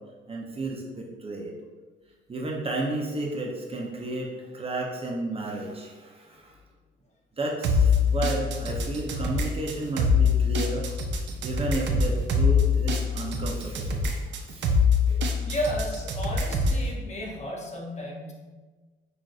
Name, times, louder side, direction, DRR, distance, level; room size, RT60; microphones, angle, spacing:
voice 1, 0.3-1.5 2.3-6.6 7.4-10.9 11.4-14.2 14.5-14.7 15.1-15.3, right 2 dB, 30° right, -1 dB, 0.7 m, -32 dB
sound 1, 7.6-16.9, left 4 dB, 65° right, 0.5 m, -24 dB
voice 2, 15.4-18.3, equal, 35° left, -2 dB, 0.8 m, -33 dB
5.8 x 2.5 x 2.4 m, 1.3 s
cardioid pair, 90°, 20 cm